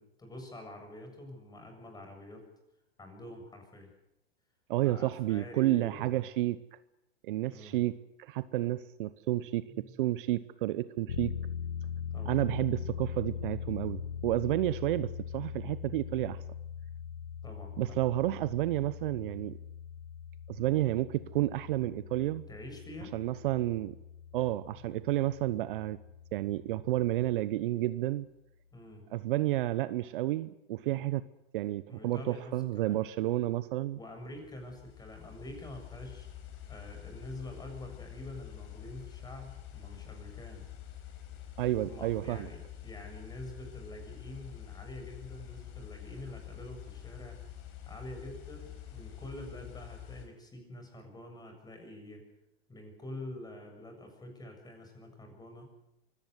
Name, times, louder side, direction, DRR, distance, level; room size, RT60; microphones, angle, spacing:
voice 1, 0.0-2.5 3.0-3.9 4.8-6.2 7.5-7.8 9.7-10.0 12.1-12.4 17.4-18.0 22.5-23.1 28.7-29.1 31.9-33.0 33.9-36.3 36.7-40.6 41.8-47.4 47.9-52.2 52.7-55.6, left 1 dB, 15° left, 4 dB, 7.3 m, -46 dB
voice 2, 4.7-6.6 7.2-11.3 12.2-16.4 17.8-19.6 20.5-22.4 23.1-24.0 24.3-26.0 26.3-28.3 29.1-31.2 31.5-34.0 41.6-42.5, right 15 dB, 55° right, 16 dB, 1.0 m, -31 dB
sound 1, 11.1-27.4, left 8 dB, 80° left, 1.6 m, -41 dB
sound 2, 34.2-50.3, left 11 dB, 45° left, 5.0 m, -47 dB
24.5 x 17.5 x 8.2 m, 0.88 s
hypercardioid pair, 105°, 31 cm